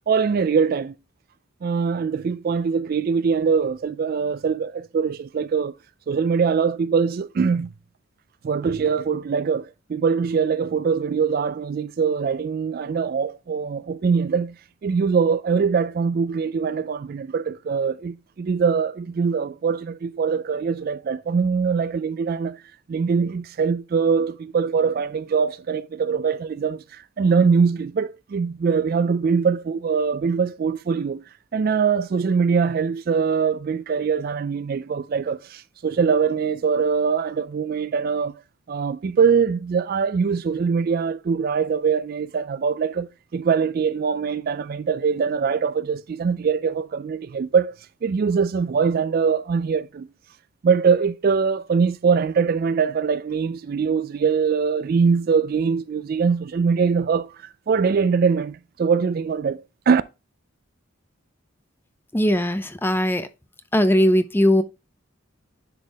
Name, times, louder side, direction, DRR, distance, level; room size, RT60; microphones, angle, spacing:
voice 1, 0.1-1.0 1.6-5.7 6.1-7.7 8.4-14.5 14.8-22.6 22.9-31.2 31.5-38.4 38.7-47.8 48.0-50.1 50.6-60.0, right 5 dB, 45° right, 0.3 m, -22 dB
voice 2, 62.1-63.3 63.7-64.6, equal, 10° left, 0.5 m, -19 dB
10.5 x 3.6 x 3.4 m
head